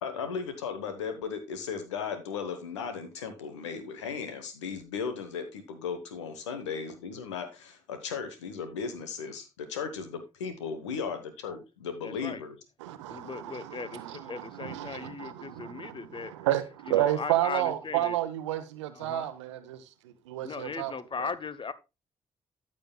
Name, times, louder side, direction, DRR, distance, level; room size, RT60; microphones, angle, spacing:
voice 1, 0.0-12.5, left 6 dB, 85° left, 1.0 m, -36 dB
voice 2, 12.0-12.4 13.1-16.3 16.9-18.2 18.9-19.3 20.4-21.7, left 5 dB, 35° left, 0.9 m, -38 dB
voice 3, 12.8-20.9 21.2-21.3, right 13 dB, 85° right, 0.7 m, -31 dB
13.5 x 6.3 x 2.3 m
hypercardioid pair, 40°, 15 cm